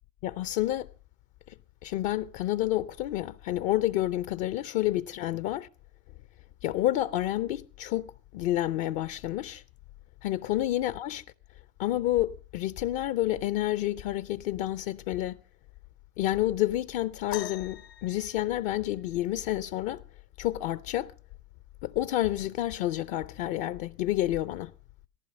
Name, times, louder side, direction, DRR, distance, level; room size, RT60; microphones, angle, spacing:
voice 1, 0.2-0.9 1.5-1.6 1.8-5.7 6.6-9.6 10.2-11.2 11.8-15.4 16.2-20.0 20.4-21.1 21.8-24.7, left 14 dB, 50° left, 0.6 m, -29 dB
sound 1, 17.3-19.2 20.9-21.0 21.8-22.0 22.9-23.0, left 11 dB, 80° left, 3.5 m, -42 dB
18.0 x 15.0 x 3.2 m
hypercardioid pair, 90°, 49 cm